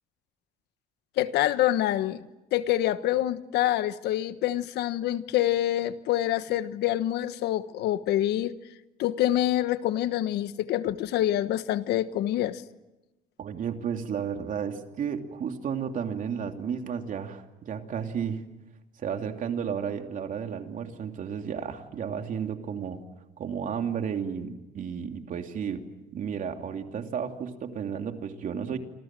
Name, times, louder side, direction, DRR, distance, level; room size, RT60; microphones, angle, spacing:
voice 1, 1.2-2.3 2.5-8.5 9.0-12.6, left 13 dB, 80° left, 12 dB, 1.3 m, -26 dB
voice 2, 13.4-18.4 19.0-23.0 23.4-25.9 26.1-28.8, right 7 dB, 50° right, 5 dB, 2.9 m, -33 dB
28.0 x 27.0 x 7.7 m, 1.0 s
cardioid pair, 110°, 17 cm